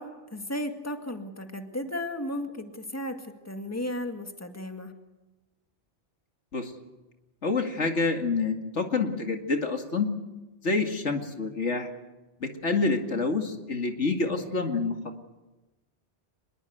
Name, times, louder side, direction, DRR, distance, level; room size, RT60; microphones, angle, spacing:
voice 1, 0.0-3.2 3.5-4.9, left 1 dB, 15° left, 5 dB, 2.0 m, -34 dB
voice 2, 7.4-10.1 10.6-11.9 12.4-15.0, left 3 dB, 85° left, 4 dB, 2.6 m, -27 dB
25.0 x 21.5 x 8.0 m, 1.1 s
omnidirectional pair, 1.2 m